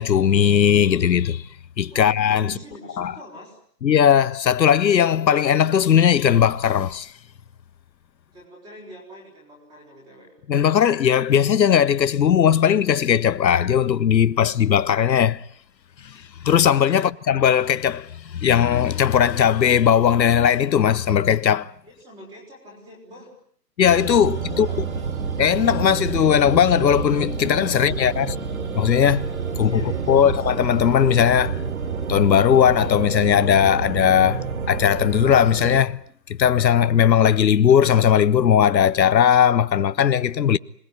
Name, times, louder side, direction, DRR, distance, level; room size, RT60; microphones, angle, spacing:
voice 1, 0.0-1.5 1.8-2.5 3.0-3.1 3.8-7.1 10.5-15.4 16.0-21.7 23.8-24.7 25.4-28.3 28.8-29.3 29.6-29.8 30.1-31.6 32.1-36.0 36.3-40.6, left 8 dB, 85° left, 1.0 m, -18 dB
voice 2, 2.4-3.6 8.3-10.4 16.9-17.1 21.8-23.3 24.2-25.1 27.7-28.4 29.5-30.4, equal, 10° right, 4.3 m, -44 dB
sound 1, 23.9-35.8, right 5 dB, 55° right, 3.6 m, -28 dB
26.0 x 20.0 x 9.6 m
hypercardioid pair, 175°, 50 cm